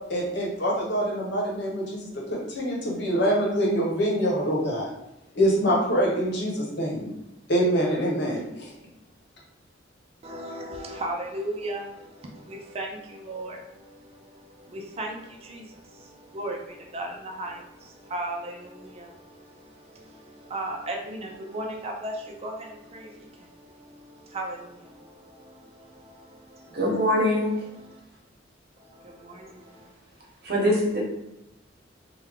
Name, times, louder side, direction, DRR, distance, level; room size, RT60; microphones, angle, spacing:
voice 1, 0.1-4.9 5.4-7.1 7.5-8.7, equal, 65° left, -2 dB, 1.0 m, -25 dB
voice 2, 10.2-27.1 27.4-28.0 28.8-29.9, right 1 dB, 35° right, 1 dB, 0.4 m, -37 dB
voice 3, 26.7-27.6 30.4-31.0, equal, 55° right, -2 dB, 1.0 m, -23 dB
3.4 x 2.2 x 3.5 m, 0.90 s
head